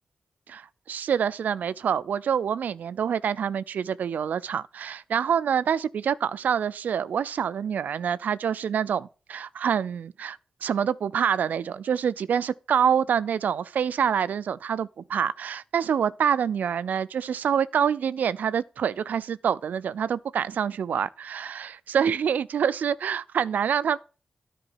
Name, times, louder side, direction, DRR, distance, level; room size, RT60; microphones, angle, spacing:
voice 1, 0.5-24.0, right 8 dB, 85° right, 0.4 m, -26 dB
9.9 x 5.0 x 7.1 m
cardioid pair, 50°, 3 cm